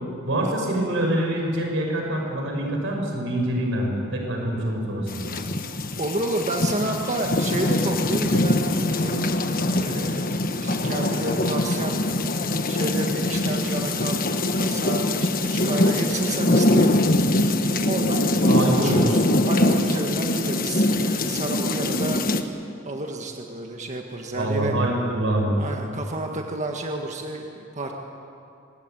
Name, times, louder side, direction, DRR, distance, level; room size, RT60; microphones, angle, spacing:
voice 1, 0.2-5.3 18.5-19.0 24.3-25.6, right 1 dB, 70° right, 1 dB, 5.7 m, -25 dB
sound 1, 5.1-22.4, left 1 dB, 45° left, 1.4 m, -23 dB
voice 2, 6.0-9.3 9.8-12.0 12.7-14.2 14.5-17.1 17.8-22.3 22.8-24.7 25.6-27.9, right 2 dB, 35° right, 2 dB, 1.6 m, -30 dB
25.0 x 20.5 x 9.0 m, 2.7 s
head